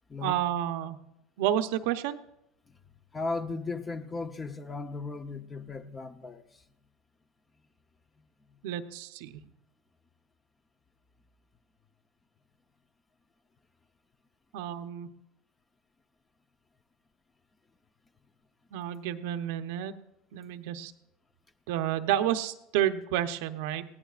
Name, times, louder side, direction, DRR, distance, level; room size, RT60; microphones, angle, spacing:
voice 1, 0.2-1.0 1.4-2.2 8.6-9.4 14.5-15.1 18.7-19.9 20.3-20.9 21.7-23.8, right 11 dB, 75° right, 0.8 m, -30 dB
voice 2, 3.1-6.6, left 3 dB, 15° left, 0.7 m, -36 dB
20.5 x 17.0 x 2.5 m
supercardioid pair, 140°, 0 cm